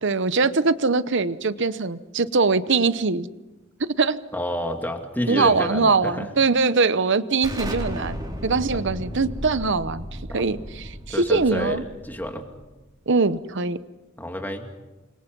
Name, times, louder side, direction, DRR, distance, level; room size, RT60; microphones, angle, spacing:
voice 1, 0.0-3.3 3.8-4.2 5.3-10.0 10.3-11.8 13.1-13.8, right 4 dB, 60° right, 14 dB, 0.9 m, -22 dB
voice 2, 4.3-6.3 10.3-10.4 11.1-12.5 14.2-14.7, left 1 dB, 10° left, 3 dB, 2.4 m, -29 dB
Explosion, 7.4-12.9, equal, 20° right, 4.4 m, -34 dB
29.5 x 24.5 x 5.4 m, 1.1 s
head